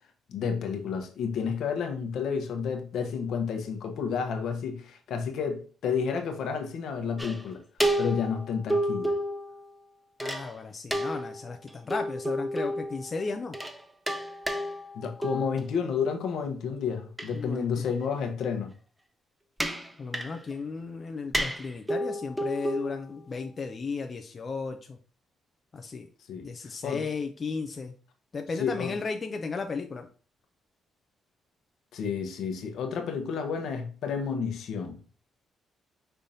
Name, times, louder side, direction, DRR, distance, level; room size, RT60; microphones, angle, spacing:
voice 1, 0.3-7.6 8.0-9.2 14.9-18.7 26.3-26.5 26.8-27.1 28.6-29.0 31.9-35.0, left 6 dB, 75° left, 0.9 m, -31 dB
sound 1, 7.2-7.4 7.8-9.7 10.2-10.5 10.9-13.1 13.5-13.8 14.1-15.7 17.2-17.3 19.6-20.5 21.3-23.2, equal, 5° right, 0.6 m, -31 dB
voice 2, 10.2-13.5 17.3-17.8 20.0-25.0 25.7-26.1 26.4-27.9 28.3-30.1, left 4 dB, 35° left, 0.5 m, -35 dB
5.3 x 3.4 x 2.7 m
cardioid pair, 90°, 0 cm